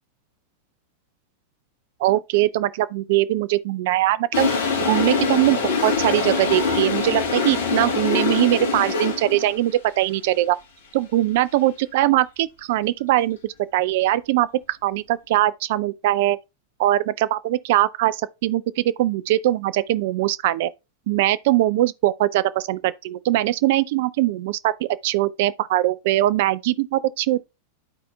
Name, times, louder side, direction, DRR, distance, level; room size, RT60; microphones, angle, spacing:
voice 1, 2.0-4.5 4.8-10.6 10.9-16.4 16.8-20.7 21.1-27.5, right 15 dB, 50° right, 0.4 m, -21 dB
Toilet flush, 4.3-9.6, left 4 dB, 60° left, 1.2 m, -23 dB
12.5 x 4.2 x 2.2 m
figure-of-eight pair, 90°, 0 cm